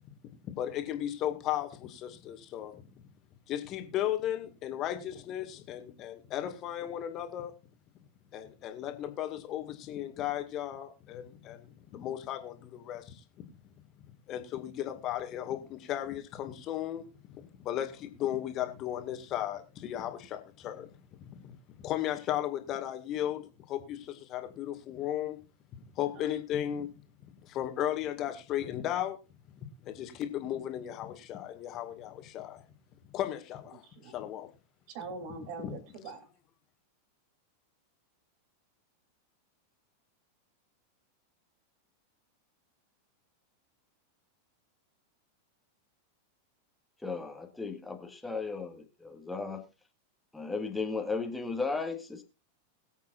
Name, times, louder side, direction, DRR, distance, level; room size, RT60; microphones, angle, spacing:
voice 1, 0.4-2.8 3.5-7.5 8.3-13.2 14.3-17.0 17.3-21.0 21.3-21.6 21.8-25.4 26.0-26.9 27.4-29.2 29.6-32.6 33.1-34.5 35.6-35.7, left 11 dB, 35° left, 2.2 m, -35 dB
voice 2, 33.8-34.1 34.9-36.2, right 4 dB, 45° right, 3.4 m, -43 dB
voice 3, 47.0-49.6 50.3-52.2, left 4 dB, 5° left, 1.9 m, -35 dB
22.0 x 8.3 x 2.6 m
figure-of-eight pair, 90°, 0 cm